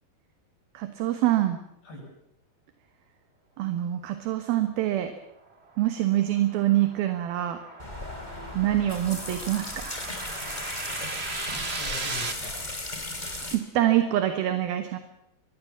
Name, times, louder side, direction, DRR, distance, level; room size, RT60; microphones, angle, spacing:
voice 1, 0.7-1.6 3.6-5.1 5.8-7.6 8.5-10.0 13.5-15.0, right 13 dB, 70° right, 8 dB, 3.0 m, -25 dB
sound 1, 5.5-12.3, right 3 dB, 30° right, 1.2 m, -37 dB
sound 2, 7.8-13.6, left 2 dB, 10° left, 3.3 m, -36 dB
voice 2, 10.2-10.6 11.3-12.7, left 3 dB, 75° left, 1 dB, 10.0 m, -43 dB
24.5 x 21.0 x 7.3 m, 0.82 s
omnidirectional pair, 4.7 m